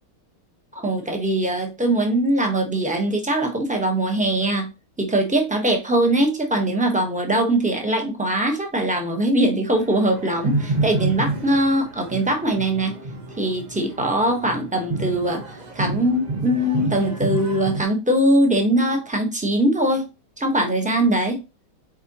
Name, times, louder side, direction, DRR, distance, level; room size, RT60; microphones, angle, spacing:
voice 1, 0.7-4.7 5.0-12.9 13.4-15.4 15.7-20.1 20.4-21.4, right 1 dB, 5° right, 3 dB, 0.7 m, -21 dB
sound 1, 9.7-17.8, right 2 dB, 55° right, 0.4 m, -29 dB
7.4 x 4.7 x 3.0 m, 0.28 s
omnidirectional pair, 2.4 m